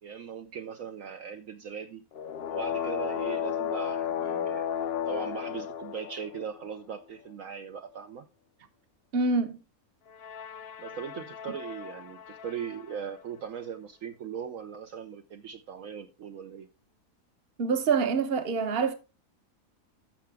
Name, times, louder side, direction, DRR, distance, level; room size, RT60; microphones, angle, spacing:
voice 1, 0.0-2.1 2.5-4.7 5.0-8.3 10.8-16.7, right 7 dB, 65° right, 1.1 m, -39 dB
sound 1, 2.1-6.7 10.1-12.9, left 8 dB, 60° left, 0.7 m, -34 dB
voice 2, 9.1-9.6 17.6-18.9, right 5 dB, 45° right, 1.2 m, -26 dB
13.5 x 5.7 x 3.4 m
omnidirectional pair, 1.5 m